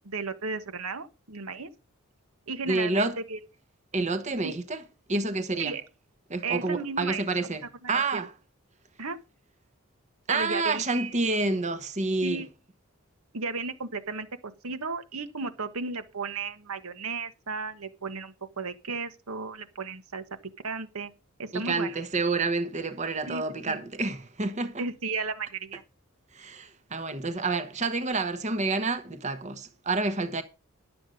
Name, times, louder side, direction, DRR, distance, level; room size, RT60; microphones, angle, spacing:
voice 1, 0.0-1.7 2.5-3.4 4.4-4.6 5.6-5.8 6.4-7.2 7.8-8.0 9.0-9.2 10.3-11.1 12.2-12.5 13.3-20.2 20.6-21.1 21.4-22.0 23.3-23.8 24.8-25.8, right 4 dB, 85° right, 1.5 m, -34 dB
voice 2, 2.6-3.2 3.9-5.8 6.3-8.4 10.3-12.5 21.5-24.9 26.3-30.4, right 3 dB, 35° right, 1.1 m, -29 dB
11.5 x 7.7 x 5.2 m
head